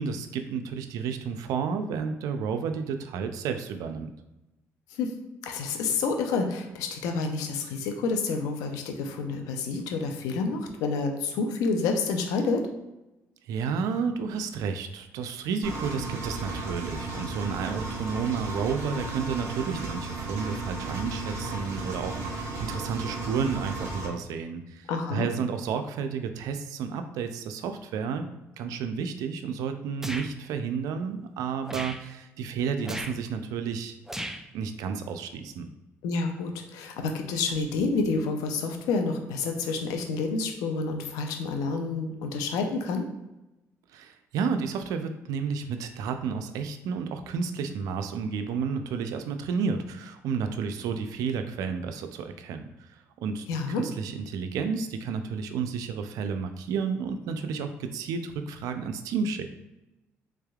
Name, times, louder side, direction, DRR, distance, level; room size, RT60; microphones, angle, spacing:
voice 1, 0.0-4.1 13.5-33.9 34.5-35.7 43.9-52.9 53.2-53.5 53.7-59.5, right 6 dB, 80° right, 7 dB, 0.4 m, -31 dB
voice 2, 5.4-12.7 24.9-25.3 36.0-43.1 53.5-53.8, left 4 dB, 90° left, 4 dB, 0.5 m, -29 dB
Engine, 15.6-24.1, right 2 dB, 55° right, 1.1 m, -34 dB
sound 1, 30.0-30.3 31.7-32.0 32.8-33.2 34.1-34.5, right 1 dB, 5° right, 0.3 m, -35 dB
3.5 x 3.3 x 2.3 m, 0.96 s
cardioid pair, 80°, 6 cm